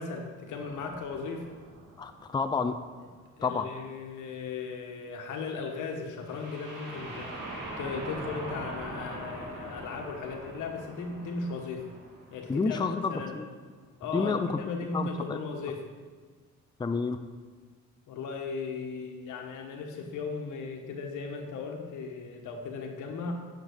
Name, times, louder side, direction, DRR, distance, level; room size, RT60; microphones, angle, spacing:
voice 1, 0.0-1.5 3.4-7.3 7.8-11.9 12.3-13.4 14.0-15.8 18.1-23.3, left 4 dB, 85° left, 2 dB, 1.4 m, -37 dB
sound 1, 0.6-3.4 6.2-13.1, right 1 dB, 85° right, 2.5 m, -43 dB
voice 2, 2.0-2.8 3.4-3.7 12.5-13.5 14.1-14.6 14.9-15.4 16.8-17.2, left 4 dB, 15° left, 8 dB, 0.5 m, -29 dB
9.4 x 5.9 x 5.1 m, 1.5 s
cardioid pair, 90°, 30 cm